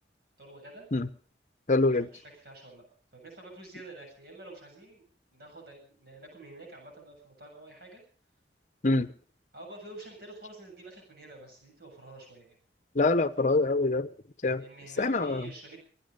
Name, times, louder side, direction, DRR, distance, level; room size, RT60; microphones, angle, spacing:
voice 1, 0.4-0.9 2.0-5.0 5.3-8.0 9.5-12.6 14.5-15.8, right 2 dB, 60° right, 7.8 m, -48 dB
voice 2, 1.7-2.1 8.8-9.1 12.9-14.1 14.4-14.6 15.0-15.5, left 2 dB, 45° left, 0.9 m, -25 dB
24.5 x 10.5 x 5.3 m
head